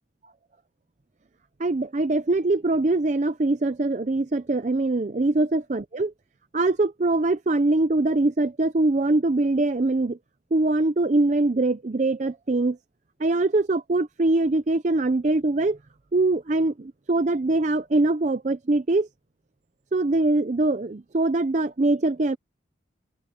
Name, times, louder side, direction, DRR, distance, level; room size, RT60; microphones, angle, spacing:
voice 1, 1.6-6.1 6.5-10.2 10.5-12.8 13.2-15.8 16.1-19.1 19.9-22.4, right 2 dB, 40° right, 0.5 m, -23 dB
open air
head